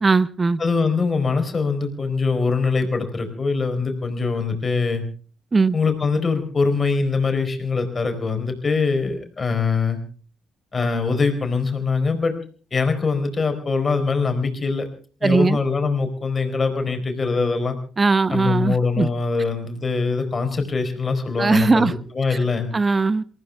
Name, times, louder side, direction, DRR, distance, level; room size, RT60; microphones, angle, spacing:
voice 1, 0.0-0.6 5.5-5.8 15.2-15.6 18.0-19.1 21.4-21.9 22.7-23.2, right 4 dB, 30° right, 19 dB, 0.9 m, -19 dB
voice 2, 0.6-5.0 5.7-10.0 10.7-12.4 12.7-14.9 15.2-17.8 18.3-22.7, left 4 dB, 35° left, 7 dB, 4.4 m, -23 dB
28.0 x 14.5 x 3.4 m, 0.40 s
figure-of-eight pair, 45°, 0 cm